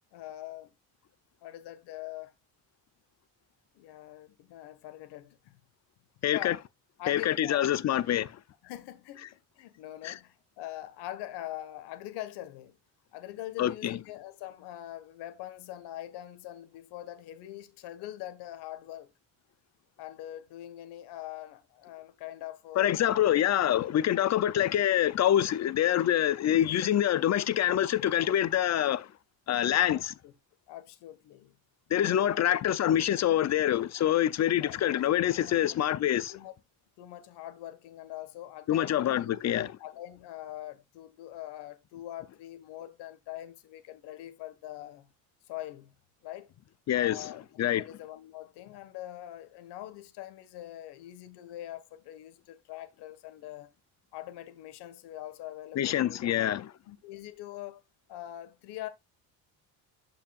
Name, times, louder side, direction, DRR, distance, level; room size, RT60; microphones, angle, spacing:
voice 1, 0.1-0.7 1.4-2.3 3.7-5.6 6.3-6.5 7.0-7.6 8.6-12.8 13.1-19.1 20.0-23.2 29.9-30.3 30.7-31.6 32.0-32.5 34.6-34.8 35.3-35.6 36.3-36.5 37.0-39.3 39.8-45.1 45.5-45.9 46.2-46.5 47.0-47.4 47.8-53.7 54.1-56.3 56.9-57.8 58.1-58.9, left 14 dB, 85° left, 1.7 m, -43 dB
voice 2, 6.2-6.6 7.1-8.4 10.0-10.2 13.6-14.0 22.8-29.1 29.5-30.1 31.9-36.4 38.7-39.7 46.9-47.3 47.6-47.8 55.8-56.7, left 11 dB, 45° left, 0.6 m, -26 dB
11.5 x 5.7 x 2.5 m
cardioid pair, 130°, 39 cm